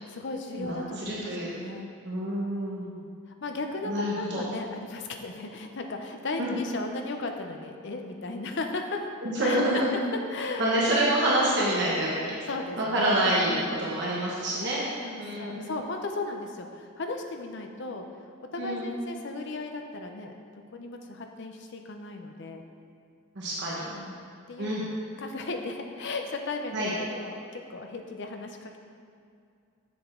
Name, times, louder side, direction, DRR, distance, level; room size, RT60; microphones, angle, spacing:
voice 1, 0.1-1.3 1.6-1.9 2.9-9.0 9.4-9.8 10.3-10.6 12.5-13.1 13.5-13.9 15.0-18.1 18.5-20.3 20.7-22.6 23.9-24.7 25.2-28.8, left 3 dB, 55° left, 4 dB, 0.6 m, -36 dB
voice 2, 0.6-1.5 2.0-2.9 3.9-4.4 6.4-6.5 9.2-9.9 10.6-12.3 12.8-14.8 15.2-15.7 18.6-18.9 23.3-23.8 24.6-24.8 26.7-26.9, right 1 dB, 55° right, -6 dB, 1.3 m, -27 dB
7.2 x 6.9 x 3.7 m, 2.4 s
head